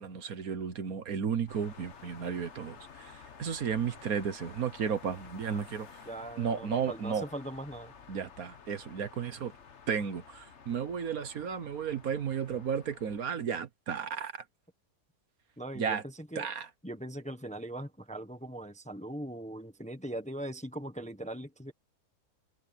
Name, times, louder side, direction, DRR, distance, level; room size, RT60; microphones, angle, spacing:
voice 1, 0.0-6.0 6.4-7.2 8.1-9.5 9.9-14.4 15.7-16.0 16.3-16.7, right 7 dB, 65° right, 1.6 m, -33 dB
sound 1, 1.5-13.2, left 6 dB, 45° left, 1.5 m, -52 dB
voice 2, 6.1-7.9 15.6-16.5 16.8-21.7, right 1 dB, 5° left, 1.1 m, -40 dB
omnidirectional pair, 1.7 m